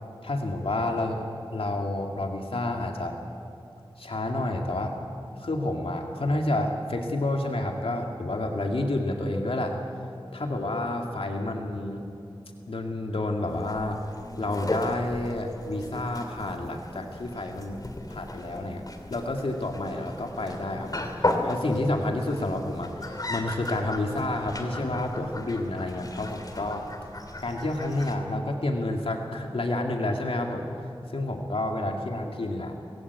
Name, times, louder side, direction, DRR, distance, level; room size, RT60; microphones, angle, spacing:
voice 1, 0.2-3.2 4.0-5.0 5.4-9.8 10.3-12.1 12.7-14.0 14.4-18.8 19.1-26.9 27.4-30.7 31.1-32.8, left 2 dB, 80° left, 2 dB, 2.2 m, -29 dB
sound 1, 13.5-28.1, left 1 dB, 40° left, 2.9 m, -35 dB
26.0 x 20.5 x 8.3 m, 2.7 s
wide cardioid pair, 80°, 9 cm